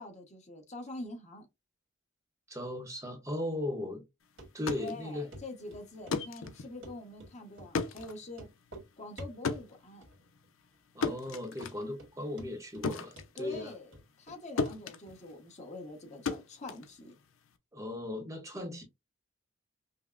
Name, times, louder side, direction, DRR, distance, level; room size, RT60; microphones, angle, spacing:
voice 1, 0.0-1.5 4.8-8.5 9.0-10.0 13.4-17.1, left 2 dB, 35° left, 1.1 m, -45 dB
voice 2, 2.5-4.0 4.5-5.3 10.9-13.7 17.7-18.8, left 1 dB, 15° right, 0.8 m, -37 dB
sound 1, 4.4-14.3 14.6-17.5, left 4 dB, 85° left, 0.6 m, -38 dB
Run, 4.4-4.5 4.8-4.9 5.3-5.4 5.7-7.3 7.6-7.7 8.0-8.1 8.3-8.9 9.2-9.7 10.0-10.5 10.7-10.8 11.3-11.4 11.6-12.1 12.4-12.9 13.2-14.4 14.7-14.8 15.1-15.2, equal, 80° right, 1.6 m, -48 dB
5.4 x 2.1 x 2.4 m
head